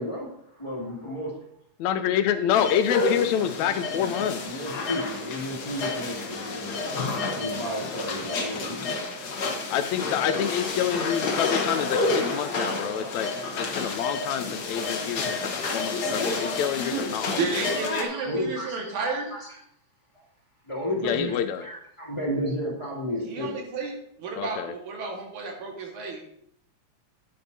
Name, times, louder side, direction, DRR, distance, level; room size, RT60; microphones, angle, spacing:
voice 1, 0.0-1.3 4.4-9.1 14.8-14.9 17.1-19.6 20.1-20.3 20.6-21.3 21.6-23.6, equal, 10° left, -5 dB, 2.1 m, -33 dB
voice 2, 1.8-4.6 9.7-17.6 21.0-21.6 24.4-24.7, left 9 dB, 80° left, 10 dB, 1.9 m, -27 dB
sound 1, 2.5-18.0, left 3 dB, 55° left, 1.1 m, -30 dB
voice 3, 17.4-19.2 23.2-23.9 24.2-26.2, right 4 dB, 85° right, 1 dB, 3.1 m, -31 dB
10.0 x 9.6 x 2.8 m, 0.69 s
omnidirectional pair, 3.3 m